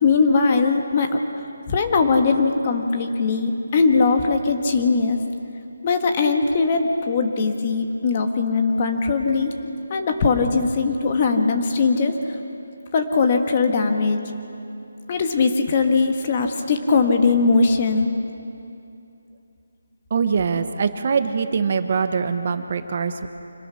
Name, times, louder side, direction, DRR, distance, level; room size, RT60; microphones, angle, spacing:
voice 1, 0.0-1.1 1.7-5.2 5.8-9.5 9.9-12.1 12.9-14.2 15.1-18.1, left 4 dB, 30° left, 5 dB, 1.4 m, -20 dB
voice 2, 20.1-23.3, right 5 dB, 40° right, 9 dB, 0.9 m, -23 dB
26.0 x 19.5 x 5.8 m, 2.7 s
hypercardioid pair, 170°, 0 cm